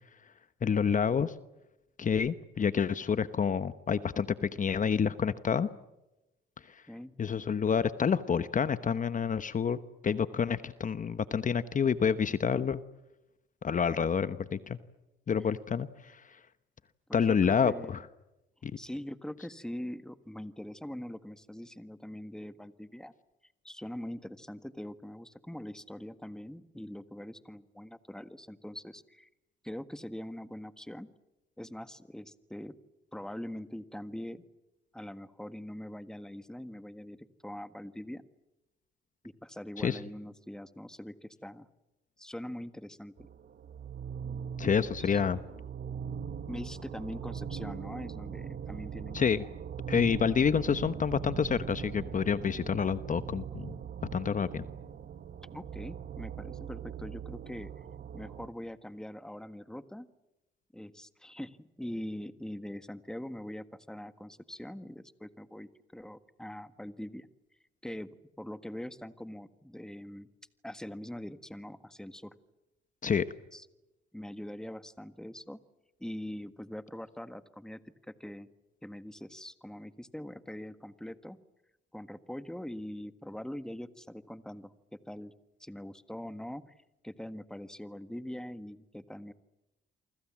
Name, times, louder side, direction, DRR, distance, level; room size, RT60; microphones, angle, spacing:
voice 1, 0.6-1.3 2.0-5.7 6.7-6.8 7.2-9.8 10.0-12.8 13.6-14.8 15.3-16.2 17.1-18.0 18.6-18.7 39.8-40.0 44.6-45.4 49.1-49.4 49.9-53.7 54.1-54.6 73.0-73.2, left 6 dB, 40° left, 13 dB, 1.1 m, -28 dB
voice 2, 17.1-17.9 18.8-23.1 23.6-29.3 29.6-31.1 31.6-32.7 33.1-34.4 34.9-37.2 37.4-38.2 39.2-41.7 42.2-43.3 44.9-45.2 46.5-49.5 55.5-57.7 58.1-60.1 60.7-67.3 67.8-70.3 70.6-72.3 73.5-73.6 74.1-75.6 76.0-77.8 78.1-78.5 78.8-81.4 81.9-84.7 85.1-85.3 85.6-86.6 87.0-89.3, left 1 dB, 5° left, 12 dB, 1.6 m, -43 dB
sound 1, 43.2-58.5, right 8 dB, 55° right, 1.7 m, -41 dB
28.5 x 25.0 x 7.5 m, 0.96 s
cardioid pair, 90°, 20 cm